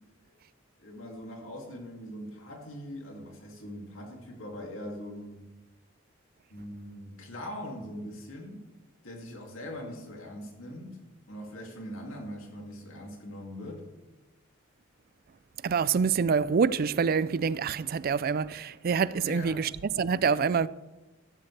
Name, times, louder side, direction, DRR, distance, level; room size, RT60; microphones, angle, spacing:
voice 1, 0.8-5.5 6.5-8.7 9.0-11.0 11.3-13.9 19.2-19.7, equal, 85° left, 2.4 m, -41 dB
voice 2, 15.6-19.7 20.0-20.7, right 6 dB, 50° right, 0.4 m, -26 dB
13.5 x 12.0 x 3.3 m
head